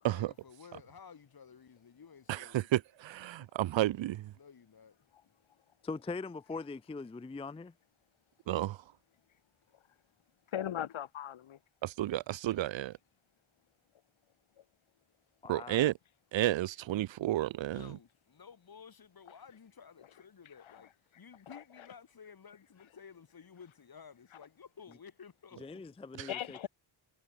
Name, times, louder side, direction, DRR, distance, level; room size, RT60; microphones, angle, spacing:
voice 1, 0.0-2.7 3.2-3.5 4.3-5.0 17.7-25.8 26.6-26.7, left 6 dB, 50° left, 2.7 m, -54 dB
voice 2, 2.3-4.3 8.5-8.8 11.8-12.9 15.5-15.9 16.3-17.8 26.2-26.3, right 14 dB, 75° right, 0.5 m, -31 dB
voice 3, 5.8-7.7 15.4-15.9 25.6-26.6, left 4 dB, 15° left, 0.4 m, -41 dB
voice 4, 10.5-11.6 26.3-26.7, left 10 dB, 90° left, 1.3 m, -37 dB
wide cardioid pair, 130°, 46 cm